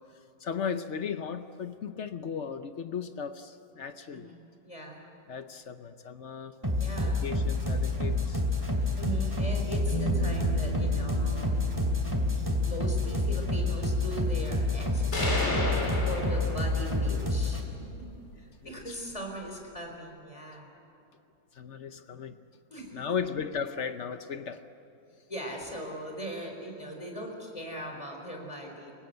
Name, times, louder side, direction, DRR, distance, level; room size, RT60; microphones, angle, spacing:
voice 1, 0.4-4.3 5.3-6.5 7.0-8.4 21.6-22.4 22.9-24.6, left 6 dB, 60° left, 9 dB, 0.7 m, -36 dB
voice 2, 4.1-5.0 6.8-7.3 9.0-11.7 12.6-15.6 16.1-18.1 18.4-20.7 22.7-23.0 25.3-28.9, right 1 dB, 15° left, 2 dB, 4.3 m, -39 dB
sound 1, 6.6-17.6, left 2 dB, 10° right, 2.7 m, -28 dB
Bass guitar, 9.9-16.2, right 5 dB, 85° right, 5.9 m, -38 dB
sound 2, 15.1-17.1, left 1 dB, 35° left, 3.8 m, -31 dB
29.5 x 17.5 x 8.0 m, 2.9 s
omnidirectional pair, 2.2 m